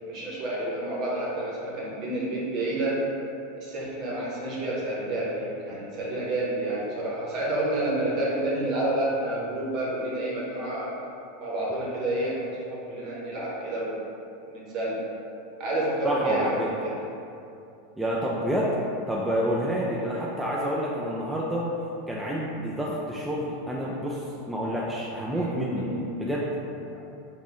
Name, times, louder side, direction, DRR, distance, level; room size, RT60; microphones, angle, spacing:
voice 1, 0.1-3.0 3.6-10.9 11.4-14.0 14.5-15.0 15.6-17.0 19.8-20.1 25.3-25.5 25.8-26.0, right 1 dB, 45° right, -6 dB, 1.1 m, -29 dB
voice 2, 16.0-16.7 18.0-18.7 19.1-21.7 22.1-25.9 26.2-26.5, equal, 5° right, -5 dB, 0.4 m, -28 dB
3.1 x 2.6 x 3.8 m, 2.7 s
figure-of-eight pair, 85°, 0 cm